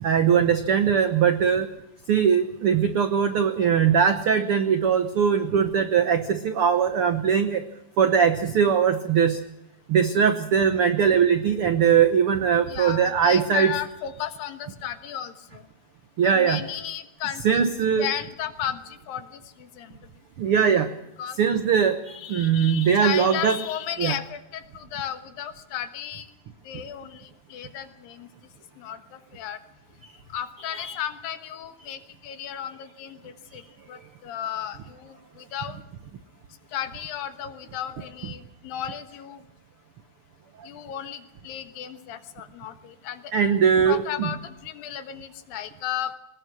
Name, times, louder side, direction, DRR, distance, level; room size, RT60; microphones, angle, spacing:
voice 1, 0.0-1.7 2.1-7.6 8.0-9.4 9.9-13.7 16.2-16.6 17.4-18.1 20.4-20.9 21.4-23.6 24.0-24.2 30.7-31.0 43.3-44.3, right 7 dB, 85° right, 8 dB, 1.2 m, -21 dB
voice 2, 12.7-15.6 16.2-17.6 18.0-19.3 19.8-20.0 21.2-21.4 22.2-26.3 26.7-28.3 28.8-29.0 29.3-29.6 30.3-33.2 33.5-33.6 33.9-35.8 36.7-39.4 40.7-43.2 43.9-46.1, left 10 dB, 80° left, 9 dB, 3.0 m, -34 dB
22.0 x 19.5 x 6.3 m, 0.88 s
omnidirectional pair, 4.1 m